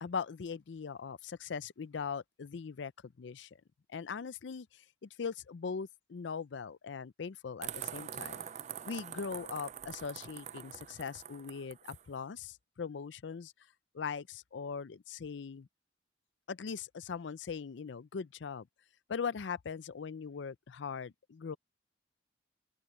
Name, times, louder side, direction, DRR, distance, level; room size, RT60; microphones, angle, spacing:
voice 1, 0.0-3.5 3.9-8.4 8.8-13.5 13.9-15.7 16.5-18.7 19.1-21.6, left 6 dB, 75° left, 0.5 m, -40 dB
sound 1, 7.6-12.0, right 9 dB, 40° right, 0.4 m, -44 dB
open air
head